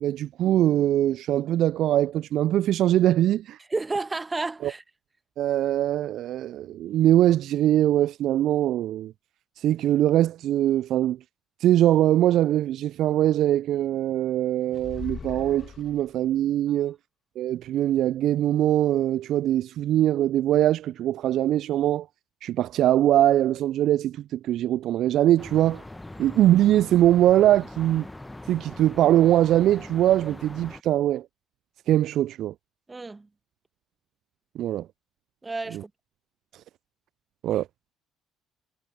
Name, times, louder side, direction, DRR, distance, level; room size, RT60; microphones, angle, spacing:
voice 1, 0.0-3.6 4.6-4.7 5.4-9.1 9.6-11.2 11.6-17.0 17.4-22.1 22.4-25.8 26.2-28.1 28.5-31.3 31.9-32.5 34.6-34.9 35.7-35.8 37.4-37.7, right 12 dB, 60° right, 0.4 m, -22 dB
voice 2, 3.7-4.8 32.9-33.3 35.4-35.9, right 3 dB, 20° right, 1.3 m, -31 dB
sound 1, 14.7-16.4, left 6 dB, 40° left, 2.0 m, -39 dB
sound 2, 25.4-30.8, left 1 dB, 10° left, 1.2 m, -42 dB
figure-of-eight pair, 55°, 0 cm